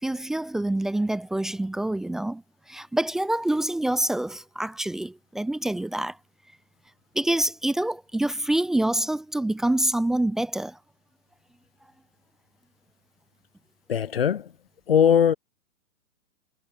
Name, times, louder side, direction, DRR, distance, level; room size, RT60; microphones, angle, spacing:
voice 1, 0.0-2.4 2.7-6.2 7.1-10.8, right 1 dB, ahead, 1.3 m, -26 dB
voice 2, 13.9-14.5 14.9-15.4, left 8 dB, 40° left, 1.3 m, -20 dB
hypercardioid pair, 175°, 43 cm